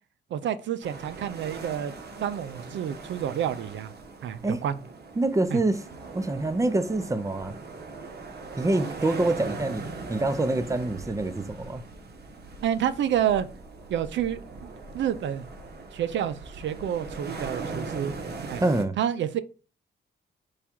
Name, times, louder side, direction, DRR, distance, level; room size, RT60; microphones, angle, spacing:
voice 1, 0.3-1.9 2.2-3.9 4.2-4.8 5.5-5.6 12.6-13.5 13.9-14.4 14.9-15.5 15.9-18.1 18.5-18.6 19.0-19.4, right 9 dB, 75° right, 0.4 m, -28 dB
sound 1, 0.8-18.8, right 3 dB, 60° right, 0.9 m, -40 dB
voice 2, 5.2-5.8 6.1-7.6 8.6-11.8 18.6-19.0, right 2 dB, 15° right, 0.5 m, -26 dB
4.8 x 2.3 x 4.3 m
cardioid pair, 75°, 19 cm